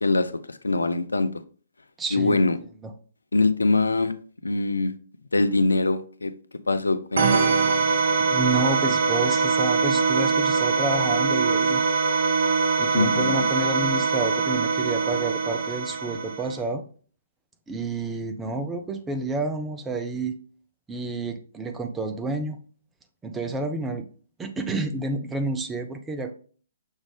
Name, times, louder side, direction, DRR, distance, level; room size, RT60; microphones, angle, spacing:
voice 1, 0.0-1.3 2.1-2.6 3.3-4.1 4.4-4.9 5.3-6.3 6.7-7.5 12.9-13.5, left 3 dB, 75° left, 0.4 m, -23 dB
voice 2, 2.0-2.4 2.8-2.9 8.3-11.8 12.8-16.8 17.7-20.4 20.9-22.6 23.2-24.1 24.4-26.3, right 3 dB, 10° right, 0.5 m, -29 dB
sound 1, 7.2-16.6, right 4 dB, 55° right, 0.6 m, -23 dB
6.3 x 2.5 x 3.4 m
figure-of-eight pair, 125°, 0 cm